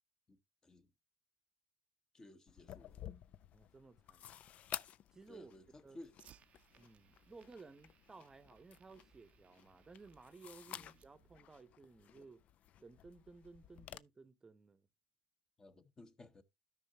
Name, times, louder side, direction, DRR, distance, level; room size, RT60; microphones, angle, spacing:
voice 1, 0.3-0.9 2.1-3.1 5.3-6.2 10.7-11.1 15.6-16.4, left 1 dB, 25° left, 1.1 m, -57 dB
sound 1, 2.5-14.0, left 11 dB, 50° left, 0.5 m, -53 dB
voice 2, 3.5-4.3 5.1-5.5 5.8-6.0 6.8-12.4 12.8-14.9, right 4 dB, 20° right, 0.9 m, -57 dB
Fire, 5.4-11.4, right 9 dB, 45° right, 0.6 m, -68 dB
13.0 x 5.5 x 2.7 m
supercardioid pair, 95°, 3 cm